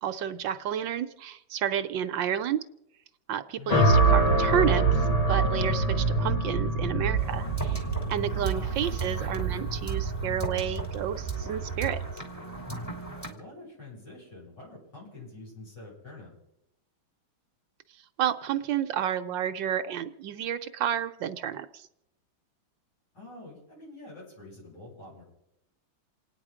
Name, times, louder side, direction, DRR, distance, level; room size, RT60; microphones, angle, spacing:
voice 1, 0.0-2.6 3.3-7.8 8.1-12.0 18.2-21.9, right 9 dB, 70° right, 10 dB, 1.4 m, -30 dB
voice 2, 3.6-3.9 8.4-8.8 13.3-16.3 23.1-25.2, left 2 dB, 60° left, -5 dB, 8.3 m, -46 dB
sound 1, 3.7-11.9, right 3 dB, 25° left, 1.0 m, -25 dB
sound 2, 7.2-13.3, right 4 dB, 10° left, 2.6 m, -35 dB
28.5 x 9.7 x 4.9 m, 0.83 s
omnidirectional pair, 2.2 m